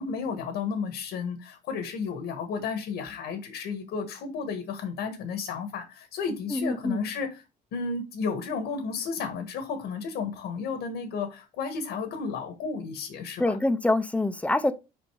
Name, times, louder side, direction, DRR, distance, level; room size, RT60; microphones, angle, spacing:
voice 1, 0.0-7.4 7.7-13.6, left 5 dB, 85° left, 1.5 m, -33 dB
voice 2, 6.5-7.0 13.4-14.7, left 2 dB, 10° left, 0.7 m, -25 dB
5.2 x 5.1 x 4.9 m
cardioid pair, 110°, 17 cm